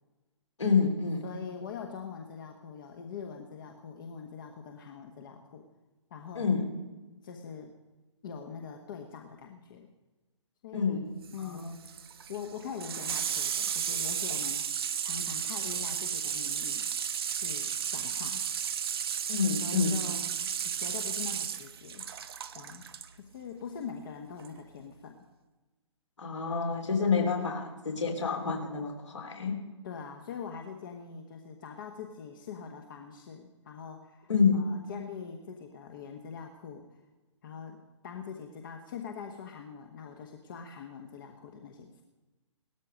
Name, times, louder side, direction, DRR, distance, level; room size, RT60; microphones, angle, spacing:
voice 1, 0.6-1.2 6.3-6.7 10.7-11.1 11.4-11.7 19.3-20.0 26.2-29.6 34.3-34.7, left 5 dB, 65° left, 2 dB, 3.4 m, -28 dB
voice 2, 1.2-5.6 6.1-6.5 7.2-7.7 8.2-9.9 10.6-12.0 12.3-14.6 15.0-16.9 17.3-18.4 19.1-19.3 19.6-20.2 20.6-22.1 22.5-22.8 23.1-25.1 27.3-27.5 29.8-36.9 37.4-37.8 38.0-42.0, left 6 dB, 40° left, 4 dB, 1.3 m, -43 dB
Water tap faucet / Sink (filling or washing), 11.2-23.1 24.4-24.5, right 8 dB, 50° right, 0.9 m, -33 dB
17.5 x 13.5 x 5.2 m, 1.2 s
figure-of-eight pair, 125°, 16 cm